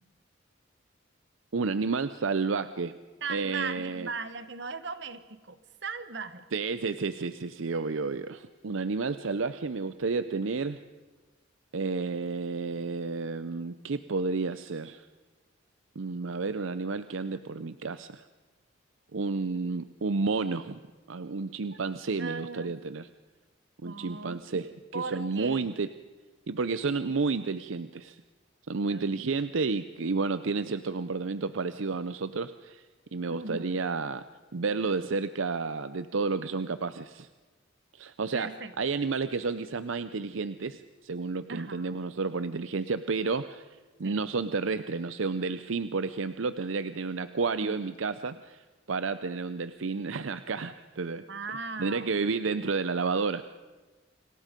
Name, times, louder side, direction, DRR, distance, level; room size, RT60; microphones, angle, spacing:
voice 1, 1.5-2.9 3.3-4.1 6.5-10.8 11.7-15.1 16.0-18.3 19.1-20.8 21.1-23.1 23.8-24.7 24.9-25.9 26.5-28.2 28.7-32.8 33.1-34.2 34.5-37.3 37.9-43.7 44.0-51.2 51.8-53.4, right 4 dB, 80° right, 12 dB, 0.6 m, -31 dB
voice 2, 3.2-6.4 22.2-22.8 23.8-24.6 24.9-25.7 28.9-29.1 33.3-33.8 38.3-38.7 41.5-42.0 44.0-44.2 51.3-52.2, right 4 dB, 60° right, 12 dB, 1.2 m, -38 dB
29.0 x 26.0 x 5.2 m, 1.3 s
head